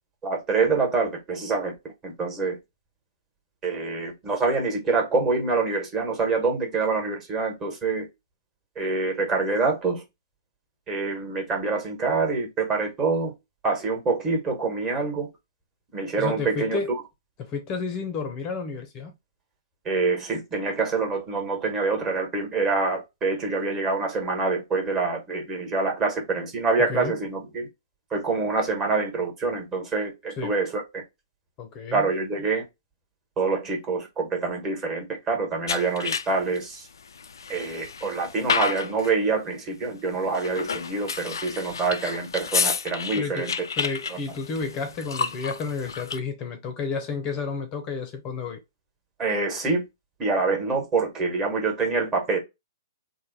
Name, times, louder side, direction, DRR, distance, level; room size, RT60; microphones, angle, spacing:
voice 1, 0.2-1.7 2.0-2.6 3.6-8.1 8.7-10.0 10.9-13.3 13.6-15.3 15.9-17.0 19.8-27.7 28.1-31.0 31.9-32.6 33.4-36.9 37.5-43.5 44.1-44.2 49.2-49.8 50.2-52.4, right 4 dB, 20° right, 1.3 m, -26 dB
voice 2, 16.2-16.9 17.4-19.1 26.9-27.1 30.4-30.5 31.6-32.1 43.2-48.6, left 5 dB, 30° left, 0.7 m, -31 dB
sound 1, 35.7-36.6 37.1-39.2 40.3-46.2, left 6 dB, 80° left, 0.4 m, -30 dB
3.3 x 2.1 x 4.0 m
hypercardioid pair, 125°, 2 cm